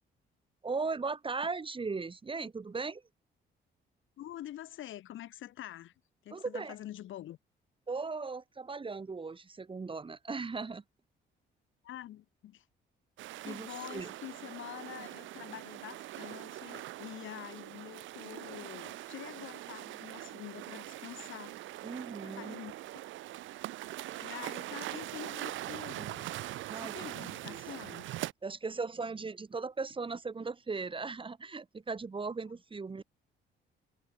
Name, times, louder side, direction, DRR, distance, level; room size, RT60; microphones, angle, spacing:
voice 1, 0.6-3.0 6.3-6.7 7.9-10.8 13.4-14.1 21.8-22.6 26.7-26.9 27.2-27.6 28.4-33.0, right 4 dB, 25° right, 1.2 m, -38 dB
voice 2, 4.2-5.9 6.2-7.4 11.8-12.7 13.4-21.6 22.2-23.1 24.2-26.3 26.7-28.1, left 13 dB, 80° left, 4.1 m, -46 dB
sound 1, 13.2-28.3, right 15 dB, 75° right, 0.5 m, -42 dB
cardioid pair, 90°, 20 cm